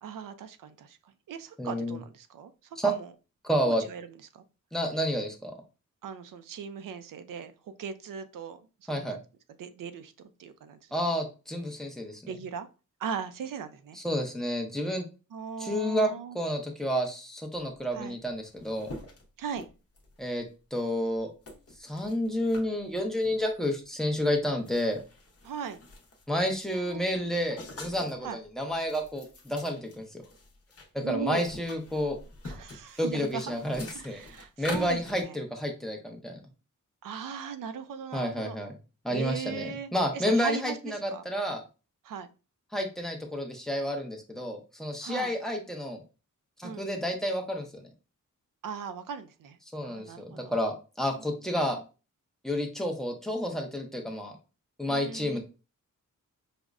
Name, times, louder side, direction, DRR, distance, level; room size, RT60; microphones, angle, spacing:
voice 1, 0.0-2.5 2.8-3.1 3.7-4.1 4.3-4.4 6.0-9.2 9.6-11.1 12.3-12.7 13.0-14.0 15.3-16.4 17.9-18.2 19.4-19.7 25.4-25.8 26.7-27.3 28.2-28.4 31.0-31.5 32.4-33.6 33.9-35.4 37.0-38.6 39.1-41.2 42.0-42.3 45.0-45.3 46.6-46.8 48.6-49.6 49.8-50.5 51.5-51.8 54.8-55.4, right 7 dB, 85° right, 10 dB, 0.5 m, -39 dB
voice 2, 1.6-2.0 2.8-2.9 3.4-3.8 4.7-5.6 8.9-9.2 10.9-12.3 13.9-15.0 15.6-18.9 20.2-20.4 20.7-21.3 21.8-25.0 26.3-30.2 31.1-32.2 33.0-34.2 34.6-36.4 38.1-38.7 39.0-41.6 42.7-46.0 46.6-47.9 49.7-51.8 52.4-54.3 54.8-55.4, equal, ahead, 2 dB, 0.5 m, -30 dB
sound 1, 18.0-18.1 18.2-20.2 20.8-20.9 21.5-22.7 23.2-23.4 24.0-24.1 24.4-26.3 26.6-28.3 28.7-30.9 31.2-35.2, left 2 dB, 45° left, 0.7 m, -45 dB
4.9 x 2.1 x 2.3 m, 0.33 s
wide cardioid pair, 160°, 32 cm